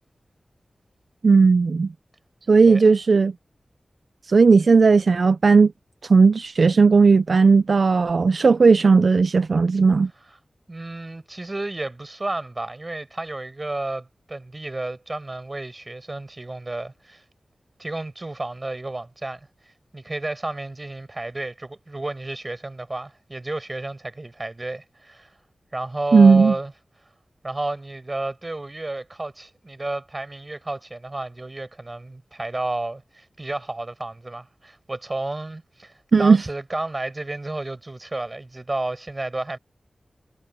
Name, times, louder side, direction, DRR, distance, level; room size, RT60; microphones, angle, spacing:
voice 1, 1.2-1.9 2.5-3.3 4.3-5.7 6.0-10.1 26.1-26.5 36.1-36.4, right 4 dB, 65° right, 0.5 m, -15 dB
voice 2, 2.6-3.0 10.3-10.4 10.7-17.2 17.8-19.5 19.9-25.3 25.7-26.7 27.4-39.6, right 2 dB, 30° right, 5.6 m, -32 dB
wide cardioid pair, 110°, 0 cm